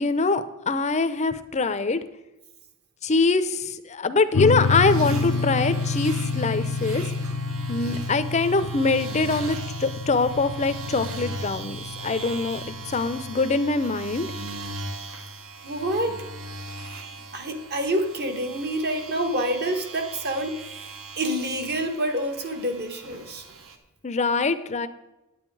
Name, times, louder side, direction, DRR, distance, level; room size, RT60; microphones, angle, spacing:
voice 1, 0.0-2.0 3.0-7.0 7.7-14.3 24.0-24.9, left 3 dB, 30° left, 11 dB, 0.6 m, -24 dB
sound 1, 4.3-13.3, left 4 dB, 75° left, 0.5 m, -29 dB
sound 2, 4.6-23.8, right 2 dB, 65° right, 1.2 m, -38 dB
voice 2, 15.6-16.2 17.3-23.5, right 1 dB, 50° right, 6 dB, 1.3 m, -28 dB
9.7 x 9.1 x 4.7 m, 0.99 s
head